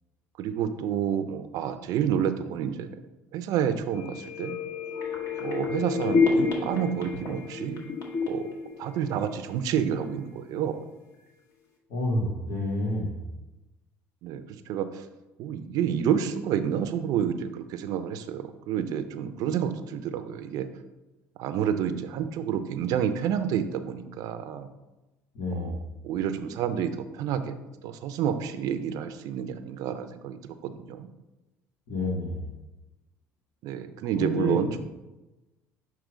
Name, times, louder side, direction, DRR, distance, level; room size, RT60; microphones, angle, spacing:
voice 1, 0.4-2.9 3.3-4.6 5.4-7.8 8.3-8.5 8.8-10.8 14.2-14.9 15.4-20.7 21.4-24.7 25.6-25.8 26.0-27.6 27.8-30.4 30.6-31.1 33.6-34.8, right 9 dB, 70° right, 10 dB, 0.6 m, -29 dB
sound 1, 4.0-9.6 10.0-10.1, left 4 dB, 55° left, 1.6 m, -29 dB
voice 2, 11.9-13.1 25.3-25.7 31.9-32.4 34.2-34.8, left 2 dB, 75° left, -2 dB, 2.2 m, -29 dB
7.4 x 3.0 x 5.0 m, 1.0 s
supercardioid pair, 95°, 7 cm